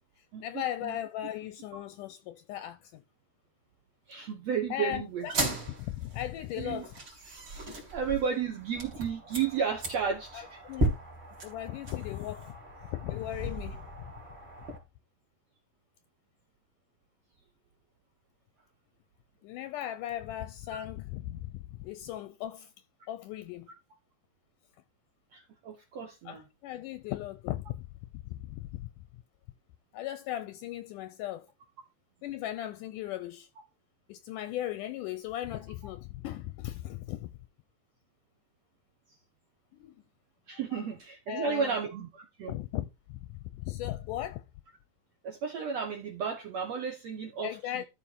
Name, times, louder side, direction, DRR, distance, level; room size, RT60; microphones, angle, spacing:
voice 1, 0.4-3.0 4.7-5.4 5.8-7.0 10.3-10.9 11.4-12.6 12.8-13.9 19.4-22.7 23.1-23.7 26.3-27.9 28.3-28.9 29.9-31.5 32.2-33.5 34.1-37.3 39.7-39.9 40.7-40.9 41.3-41.8 42.5-44.4 47.4-47.8, left 13 dB, 80° left, 2.0 m, -37 dB
voice 2, 4.1-5.3 6.6-6.8 7.9-10.6 25.3-26.4 40.5-42.6 45.2-47.8, right 6 dB, 60° right, 2.0 m, -33 dB
sound 1, 5.2-14.8, right 1 dB, 35° right, 3.6 m, -37 dB
13.0 x 4.5 x 4.6 m
omnidirectional pair, 4.0 m